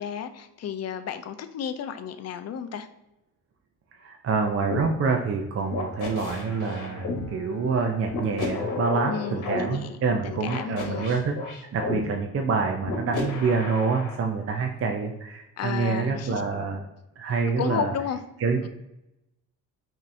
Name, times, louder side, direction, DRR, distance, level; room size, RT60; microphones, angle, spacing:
voice 1, 0.0-2.9 9.1-11.1 15.6-16.4 17.6-18.2, left 8 dB, 50° left, 10 dB, 0.5 m, -33 dB
voice 2, 4.0-11.3 11.7-16.9 17.2-17.9 18.4-18.7, right 4 dB, 45° right, 3 dB, 0.5 m, -26 dB
sound 1, 4.7-4.9 5.7-7.2 8.1-9.6 10.5-12.0 12.8-14.2, left 4 dB, 65° left, 1.1 m, -32 dB
Bowed string instrument, 5.6-9.6, right 1 dB, ahead, 1.0 m, -46 dB
5.2 x 2.8 x 2.6 m, 0.91 s
cardioid pair, 85°, 34 cm